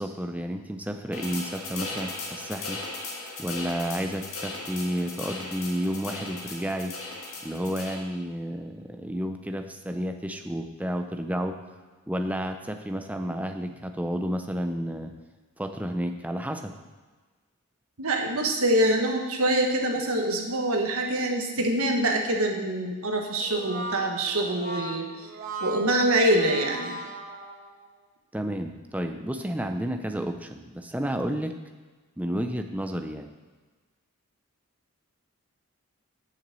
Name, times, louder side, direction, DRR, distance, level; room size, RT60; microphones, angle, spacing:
voice 1, 0.0-2.8 3.4-7.0 7.4-11.6 12.1-15.1 15.6-16.7 28.3-31.5 32.2-33.3, equal, 5° right, 6 dB, 0.5 m, -31 dB
sound 1, 1.1-8.0, left 3 dB, 70° left, 1.8 m, -37 dB
voice 2, 18.0-25.1 25.6-27.0, right 1 dB, 75° right, 2 dB, 1.4 m, -25 dB
Brass instrument, 23.4-27.9, right 2 dB, 40° right, 1.2 m, -38 dB
7.1 x 5.9 x 7.5 m, 1.4 s
head